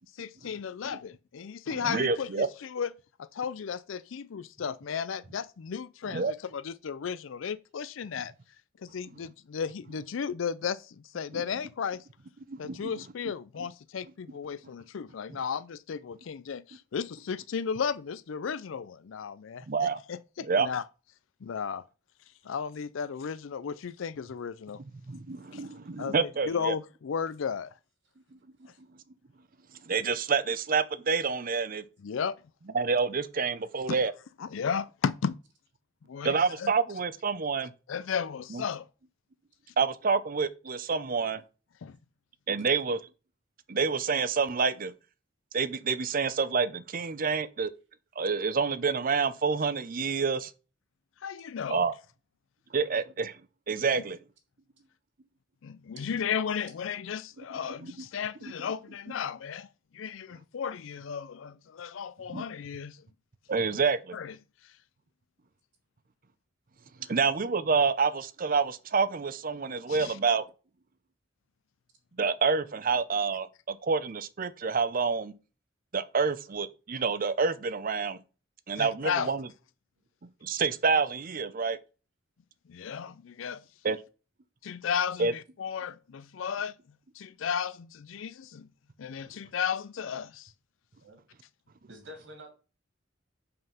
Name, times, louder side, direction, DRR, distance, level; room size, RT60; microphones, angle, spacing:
voice 1, 0.2-2.9 3.2-8.3 8.9-12.0 12.6-20.8 21.4-21.8 22.4-24.8 25.5-25.7 26.0-26.1 26.5-27.7 32.0-32.4 34.4-35.4 36.1-36.7 37.9-38.9 41.8-42.0 51.2-51.8 55.6-59.7 59.9-63.0 64.1-64.3 69.9-70.2 78.8-79.3 82.7-83.6 84.6-86.7 87.1-88.7 89.0-90.5, left 7 dB, 75° left, 0.4 m, -34 dB
voice 2, 1.8-2.5 6.1-6.3 11.3-11.4 12.5-13.0 15.3-15.4 19.7-20.0 20.4-20.7 25.1-26.7 28.6-28.7 29.9-31.8 32.7-34.1 36.2-37.7 38.5-38.6 39.8-41.4 42.5-43.0 43.7-44.9 45.5-47.7 48.2-50.5 51.7-51.9 52.7-53.4 53.7-54.2 58.0-58.1 62.3-62.4 63.5-64.0 67.1-70.4 72.2-75.3 75.9-78.2 78.7-79.5 80.4-81.8 83.8-84.0 85.2-85.3, right 5 dB, 45° right, 0.6 m, -28 dB
voice 3, 91.9-92.5, equal, 65° right, 2.9 m, -48 dB
5.8 x 5.4 x 5.5 m
head